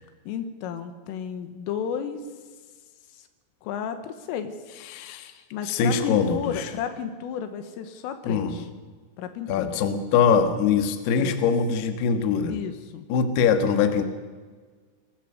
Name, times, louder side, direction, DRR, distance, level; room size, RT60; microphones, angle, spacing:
voice 1, 0.3-2.2 3.6-4.6 5.5-8.7 9.2-9.8 11.2-11.4 12.5-13.1, left 8 dB, 80° left, 9 dB, 3.8 m, -32 dB
voice 2, 4.9-5.3 5.6-6.7 8.2-8.5 9.5-12.6 13.1-14.1, left 6 dB, 65° left, 7 dB, 3.1 m, -23 dB
23.0 x 14.5 x 7.8 m, 1.5 s
omnidirectional pair, 5.8 m